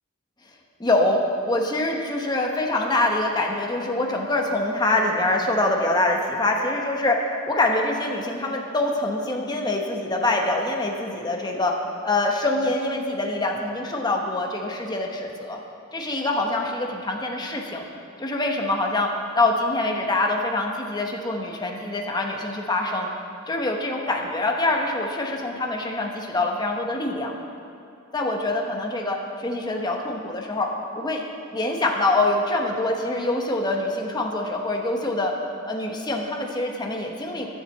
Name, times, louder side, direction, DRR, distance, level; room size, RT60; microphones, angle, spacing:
voice 1, 0.8-11.8 12.0-15.6 15.9-17.8 18.2-23.1 23.5-27.3 28.1-31.2 31.5-35.3 35.7-37.5, left 2 dB, 20° left, 1 dB, 1.0 m, -25 dB
11.0 x 7.5 x 7.2 m, 2.6 s
head